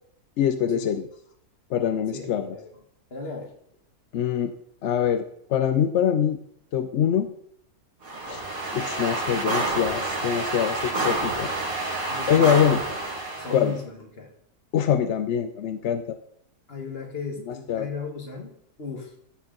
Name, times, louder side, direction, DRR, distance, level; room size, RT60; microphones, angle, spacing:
voice 1, 0.4-1.0 1.7-2.5 4.1-4.5 4.8-5.2 5.5-6.4 6.7-7.3 8.3-8.4 8.7-11.5 12.3-12.8 13.5-13.7 14.7-16.2 17.5-17.9, left 9 dB, 65° left, 9 dB, 0.7 m, -24 dB
voice 2, 2.1-2.7 3.1-3.5 12.1-13.0 13.4-14.3 16.7-19.2, left 5 dB, 40° left, 2 dB, 1.9 m, -36 dB
sound 1, 8.0-13.7, right 2 dB, 60° right, 2.7 m, -28 dB
14.0 x 6.3 x 4.0 m, 0.69 s
omnidirectional pair, 1.7 m